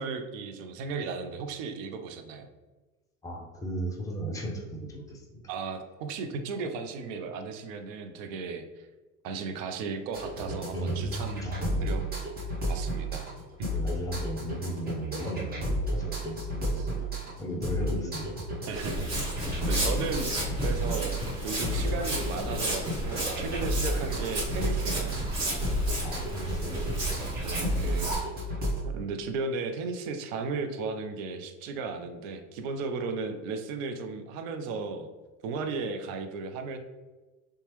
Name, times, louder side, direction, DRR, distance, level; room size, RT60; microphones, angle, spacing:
voice 1, 0.0-2.5 5.5-8.9 9.2-11.5 11.8-12.0 12.7-13.3 13.6-13.7 16.8-16.9 17.8-18.2 18.7-19.3 19.6-21.2 21.4-25.2 27.3-28.2 28.8-35.1 35.4-36.8, right 4 dB, 60° right, 6 dB, 0.5 m, -35 dB
voice 2, 3.2-5.4 10.7-12.0 13.7-16.9 17.4-18.4 26.0-26.8, right 1 dB, 10° left, -1 dB, 0.4 m, -35 dB
sound 1, 10.1-28.8, equal, 20° right, 0.8 m, -32 dB
Walk footsteps, 18.7-28.1, right 1 dB, 35° right, 1.2 m, -32 dB
2.9 x 2.2 x 3.0 m, 1.2 s
hypercardioid pair, 80°, 45 cm